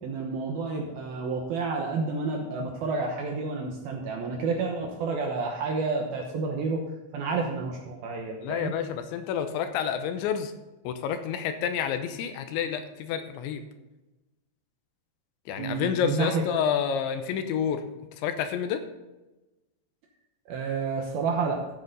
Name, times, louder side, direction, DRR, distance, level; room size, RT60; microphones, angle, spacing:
voice 1, 0.0-6.8 7.1-8.7 15.6-16.4 20.5-21.6, right 4 dB, 70° right, 1 dB, 2.4 m, -30 dB
voice 2, 8.4-10.5 10.8-13.6 15.5-17.8 18.2-18.8, left 8 dB, 80° left, 8 dB, 3.0 m, -29 dB
14.5 x 8.0 x 4.0 m, 1.1 s
omnidirectional pair, 5.5 m